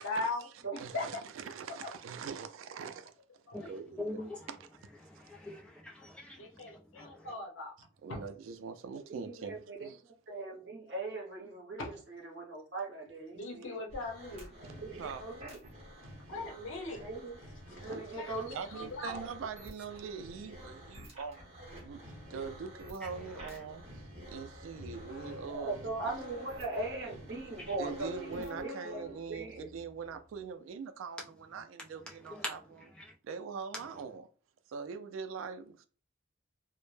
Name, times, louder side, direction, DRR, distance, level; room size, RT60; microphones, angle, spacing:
voice 1, 0.0-0.5 0.7-1.1 1.8-1.9 3.5-3.7 6.4-7.7 8.1-8.2 11.8-11.9 13.3-14.5 16.3-17.0 17.7-17.8 18.1-19.2, left 2 dB, 80° left, 0.7 m, -39 dB
voice 2, 0.8-3.1 3.6-4.2 4.5-4.6 7.8-10.0 14.6-15.3 16.0-16.3 17.9-18.0 18.5-21.5 21.8-22.0 22.3-25.9 27.8-32.6 33.2-34.3 34.7-35.9, right 5 dB, 90° right, 0.3 m, -43 dB
voice 3, 3.5-4.5 5.0-7.3 23.0-23.6 27.6-27.7 32.1-33.1, left 1 dB, 5° left, 0.5 m, -44 dB
voice 4, 8.9-9.9 10.3-13.8 14.6-15.6 16.9-17.4 17.8-18.6 25.5-29.7, right 2 dB, 60° right, 0.8 m, -40 dB
sound 1, 13.9-28.7, equal, 30° right, 0.9 m, -50 dB
sound 2, 20.5-30.5, left 2 dB, 40° left, 0.9 m, -52 dB
2.1 x 2.0 x 3.1 m
head